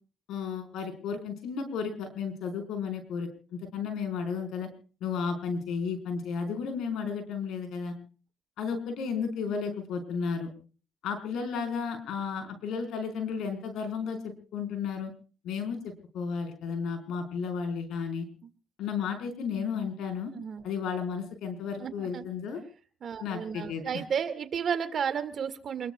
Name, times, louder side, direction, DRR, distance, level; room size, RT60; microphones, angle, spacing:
voice 1, 0.3-4.7 5.0-7.9 8.6-10.5 11.0-15.1 15.4-18.3 18.8-20.3 20.6-22.6 23.2-24.0, left 6 dB, 85° left, 6 dB, 4.4 m, -33 dB
voice 2, 21.8-22.2 23.0-25.9, right 7 dB, 55° right, 10 dB, 1.9 m, -32 dB
28.0 x 21.0 x 2.3 m, 0.38 s
cardioid pair, 90°, 0 cm